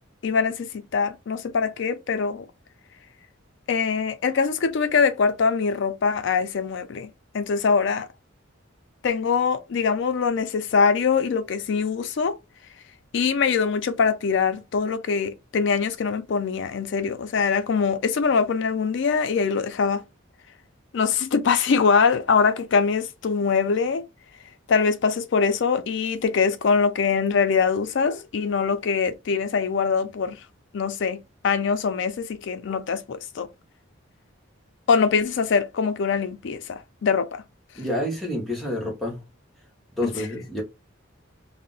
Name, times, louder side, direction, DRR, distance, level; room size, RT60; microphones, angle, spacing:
voice 1, 0.2-2.5 3.7-7.1 7.3-8.1 9.0-12.4 13.1-20.0 20.9-24.1 24.7-30.4 30.7-31.2 31.4-33.5 34.9-37.4 40.0-40.1, left 5 dB, 60° left, 0.4 m, -23 dB
voice 2, 37.8-39.2 39.9-40.6, left 1 dB, ahead, 0.9 m, -28 dB
2.4 x 2.0 x 3.7 m
head